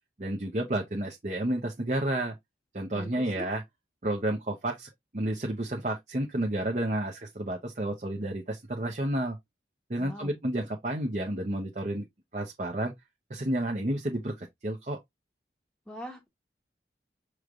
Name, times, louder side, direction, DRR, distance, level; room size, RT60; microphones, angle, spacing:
voice 1, 0.2-2.3 2.7-3.6 4.0-9.4 9.9-12.0 12.3-12.9 13.3-15.0, right 1 dB, 40° right, 0.8 m, -31 dB
voice 2, 2.9-3.5 10.0-10.4 15.9-16.3, equal, 5° left, 1.0 m, -42 dB
6.3 x 3.2 x 2.4 m
head